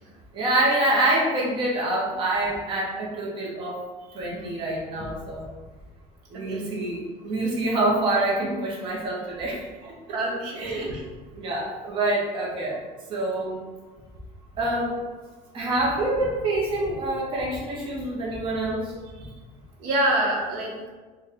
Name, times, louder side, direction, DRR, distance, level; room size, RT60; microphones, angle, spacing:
voice 1, 0.3-3.8 4.1-5.4 6.3-9.6 10.6-10.9 11.3-12.7 13.1-13.6 14.6-14.9 15.5-18.9, right 1 dB, 30° right, -4 dB, 0.7 m, -26 dB
voice 2, 10.1-11.0 19.2-19.3 19.8-20.9, right 1 dB, 65° right, -2 dB, 0.9 m, -27 dB
4.0 x 2.2 x 3.4 m, 1.3 s
cardioid pair, 160°, 17 cm